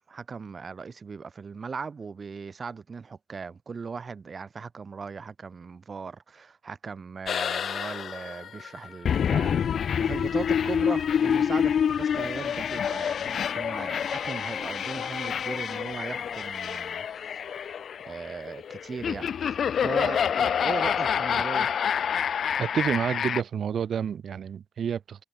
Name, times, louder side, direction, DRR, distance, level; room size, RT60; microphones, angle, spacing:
voice 1, 0.1-17.7 18.0-21.7, right 5 dB, 35° right, 3.1 m, -38 dB
sound 1, 7.3-23.4, left 8 dB, 55° left, 0.3 m, -27 dB
voice 2, 22.6-25.2, right 8 dB, 55° right, 0.5 m, -29 dB
cardioid pair, 90°, 0 cm